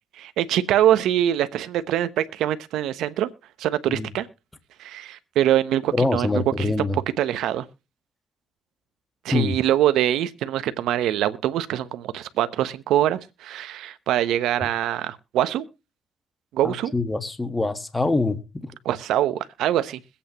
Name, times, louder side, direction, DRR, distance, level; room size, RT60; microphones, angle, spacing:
voice 1, 0.1-3.3 3.6-4.3 4.8-6.9 7.2-7.7 9.2-15.6 16.5-16.9 18.8-20.0, right 12 dB, 85° right, 0.6 m, -24 dB
voice 2, 5.9-7.0 9.3-9.6 16.6-18.7, left 3 dB, 15° left, 1.2 m, -24 dB
22.0 x 8.5 x 2.9 m
cardioid pair, 90°, 0 cm